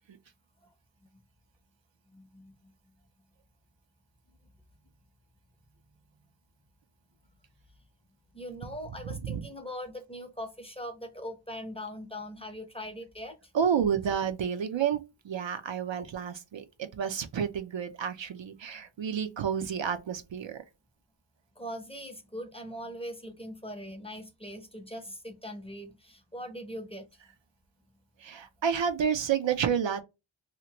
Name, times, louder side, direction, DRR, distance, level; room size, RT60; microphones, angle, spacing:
voice 1, 2.1-2.7 8.3-13.5 21.6-27.1, equal, 10° left, 0.7 m, -41 dB
voice 2, 9.0-9.4 13.5-20.6 28.2-30.0, right 7 dB, 65° right, 0.5 m, -30 dB
2.9 x 2.5 x 2.8 m
wide cardioid pair, 60°, 49 cm